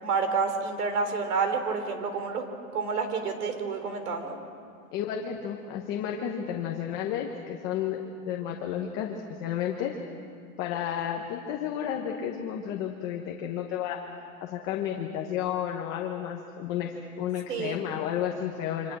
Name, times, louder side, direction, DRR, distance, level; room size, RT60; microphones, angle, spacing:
voice 1, 0.0-2.4 2.7-4.4 17.5-17.8, right 5 dB, 90° right, 7 dB, 3.9 m, -29 dB
voice 2, 4.9-9.9 10.6-14.0 14.4-19.0, left 9 dB, 25° left, 1 dB, 1.1 m, -32 dB
27.0 x 26.0 x 6.2 m, 2.3 s
supercardioid pair, 175°, 45 cm